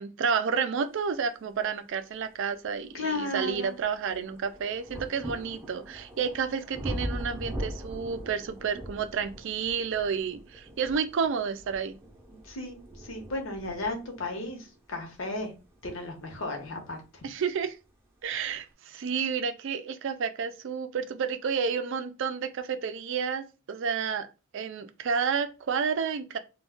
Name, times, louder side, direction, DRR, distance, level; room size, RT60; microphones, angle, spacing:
voice 1, 0.0-12.0 17.2-17.8 18.2-24.3 24.5-26.4, right 6 dB, 65° right, 0.4 m, -30 dB
sound 1, 2.0-2.1 2.6-17.3 18.2-18.3, equal, 15° right, 0.6 m, -41 dB
voice 2, 2.9-3.7 12.4-15.5 15.8-17.0, left 2 dB, 70° left, 0.9 m, -34 dB
2.4 x 2.2 x 3.6 m
head